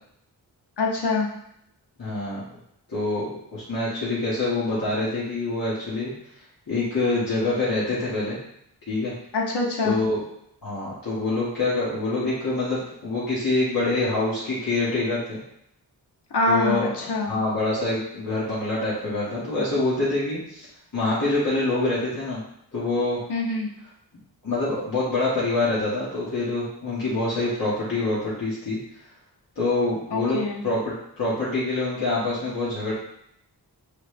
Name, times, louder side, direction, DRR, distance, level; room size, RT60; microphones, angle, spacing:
voice 1, 0.8-1.3 9.3-10.0 16.3-16.8 17.1-17.3 23.3-23.7 30.1-30.6, left 3 dB, 70° left, -1 dB, 1.1 m, -24 dB
voice 2, 2.0-2.6 2.9-6.1 6.7-8.4 8.9-9.1 9.8-10.2 10.6-15.4 16.5-16.9 17.3-20.7 20.9-22.4 22.7-23.2 24.4-28.8 29.5-32.9, left 2 dB, 55° left, -9 dB, 1.6 m, -25 dB
5.6 x 3.4 x 2.2 m, 0.75 s
cardioid pair, 45°, 41 cm